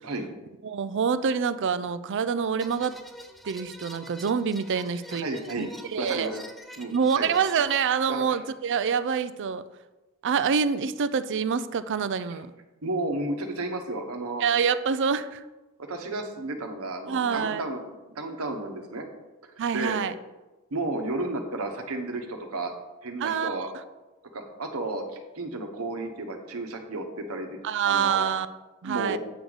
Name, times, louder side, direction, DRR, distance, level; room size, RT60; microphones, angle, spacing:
voice 1, 0.6-2.9 3.4-5.3 5.6-6.3 6.9-9.6 10.2-12.5 14.4-15.4 17.1-17.6 19.6-20.1 23.2-23.6 27.6-28.5 28.8-29.2, right 6 dB, 55° right, 13 dB, 0.4 m, -26 dB
sound 1, 2.6-7.8, equal, ahead, 0.5 m, -46 dB
voice 2, 5.2-5.7 6.0-6.4 6.8-7.3 8.1-8.4 12.8-14.4 15.8-17.8 18.1-19.1 19.7-20.0 20.7-22.7 23.0-23.7 24.3-25.0 25.3-27.6 27.8-28.2 28.8-29.2, right 2 dB, 75° right, 4 dB, 1.1 m, -32 dB
8.1 x 6.2 x 4.0 m, 1.1 s
head